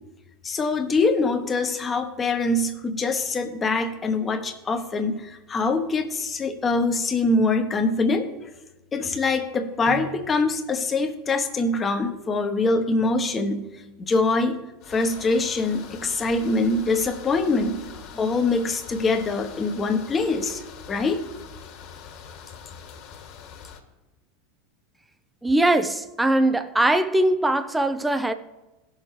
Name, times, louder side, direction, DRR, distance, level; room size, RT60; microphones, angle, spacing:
voice 1, 0.4-8.5 8.9-14.6 14.9-20.6 20.9-21.2, left 3 dB, 25° left, 1.2 m, -24 dB
sound 1, 14.8-23.8, left 7 dB, 50° left, 2.1 m, -43 dB
voice 2, 25.4-28.3, right 1 dB, 10° right, 0.6 m, -21 dB
17.0 x 6.5 x 3.3 m
hypercardioid pair, 85°, 0 cm